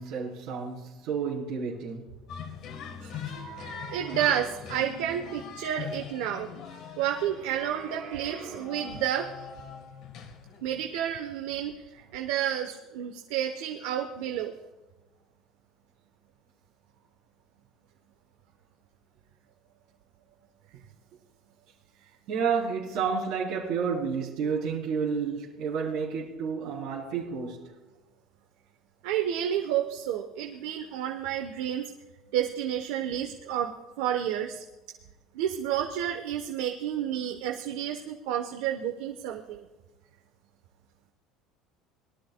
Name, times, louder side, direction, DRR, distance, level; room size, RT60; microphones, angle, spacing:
voice 1, 0.0-2.1 3.2-4.5 7.4-8.9 12.0-12.1 22.3-27.8, right 6 dB, 55° right, 3.9 m, -32 dB
sound 1, 2.3-10.9, left 7 dB, 45° left, 1.5 m, -42 dB
voice 2, 3.0-3.4 3.9-6.5 7.0-9.3 10.6-14.5 29.0-31.9 32.3-34.6 35.3-39.6, right 10 dB, 85° right, 1.0 m, -30 dB
22.0 x 13.0 x 2.3 m
cardioid pair, 175°, 0 cm